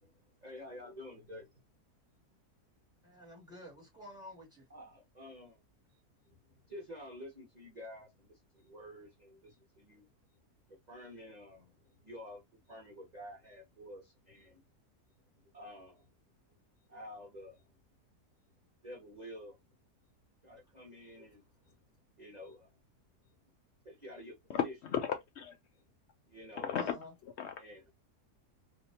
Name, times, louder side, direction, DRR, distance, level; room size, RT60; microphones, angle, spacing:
voice 1, 0.4-1.5 4.7-5.6 6.3-10.1 10.9-11.7 12.0-12.4 12.7-14.6 15.5-16.1 16.9-17.7 18.8-19.6 20.4-21.7 22.2-22.7 23.8-24.4 24.6-24.7 26.3-26.7 27.6-27.9, left 1 dB, 35° right, 0.8 m, -50 dB
voice 2, 3.0-4.7 26.7-27.1, left 1 dB, ahead, 2.0 m, -50 dB
voice 3, 24.9-25.6 26.6-27.0 27.4-27.5, left 8 dB, 90° left, 0.6 m, -34 dB
3.2 x 2.8 x 2.7 m
omnidirectional pair, 1.7 m